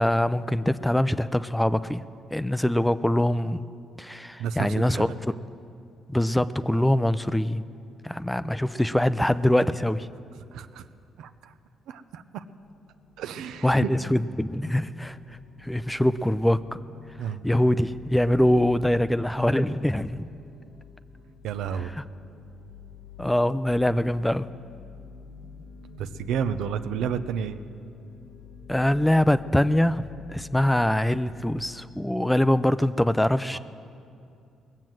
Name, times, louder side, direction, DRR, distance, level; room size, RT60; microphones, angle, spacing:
voice 1, 0.0-2.0 2.3-3.6 4.0-5.1 6.1-7.6 8.0-10.1 13.6-15.2 15.6-16.6 17.4-20.3 23.2-24.5 28.7-30.0 30.3-33.6, left 1 dB, 5° left, 13 dB, 0.4 m, -23 dB
voice 2, 4.4-5.1 10.5-10.9 11.2-11.5 11.9-12.4 13.2-13.9 17.2-17.4 21.4-21.9 26.0-27.6 33.5-33.6, right 8 dB, 85° right, 10 dB, 0.6 m, -31 dB
sound 1, 12.2-31.7, left 4 dB, 70° left, 1.2 m, -47 dB
20.0 x 7.4 x 7.8 m, 2.5 s
cardioid pair, 90°, 0 cm